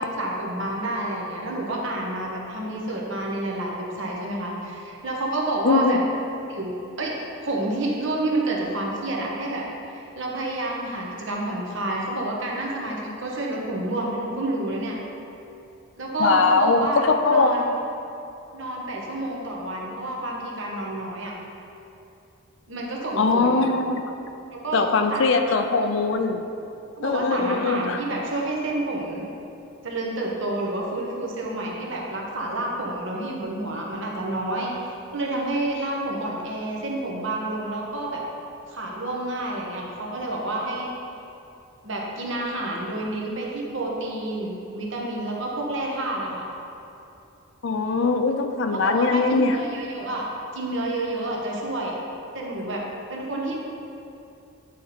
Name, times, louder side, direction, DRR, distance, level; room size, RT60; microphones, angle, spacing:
voice 1, 0.0-6.0 6.5-7.1 7.4-15.0 16.0-17.7 18.5-21.3 22.7-23.6 24.5-24.8 25.1-25.6 27.0-29.3 29.8-38.2 38.7-40.9 41.8-46.5 48.8-50.3 50.5-52.0 52.3-52.8 53.1-53.6, right 1 dB, 55° right, -2 dB, 1.1 m, -29 dB
voice 2, 5.7-6.0 16.2-17.5 23.2-24.0 24.7-26.4 27.0-28.0 47.6-49.6, left 4 dB, 55° left, 6 dB, 0.4 m, -21 dB
9.1 x 4.1 x 4.2 m, 2.8 s
head